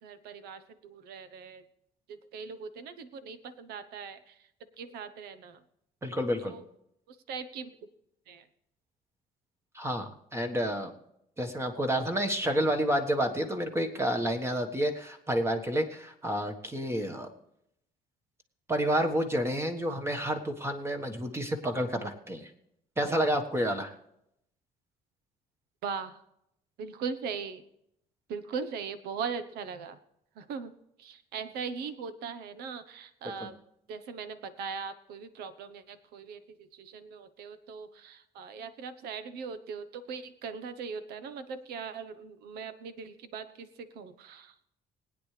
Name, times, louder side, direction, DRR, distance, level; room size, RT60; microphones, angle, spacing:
voice 1, 0.0-1.6 2.1-4.4 4.8-5.6 6.4-6.6 7.1-7.8 8.3-8.5 25.8-26.2 26.8-27.6 28.3-30.0 30.4-30.7 31.0-33.6 33.9-43.7 43.9-44.5, right 6 dB, 85° right, 12 dB, 1.0 m, -40 dB
voice 2, 6.0-6.5 9.7-10.9 11.4-17.3 18.7-22.5 23.0-23.9 33.4-33.5, equal, 15° right, 4 dB, 1.4 m, -29 dB
20.0 x 9.2 x 3.3 m, 0.77 s
cardioid pair, 105°, 16 cm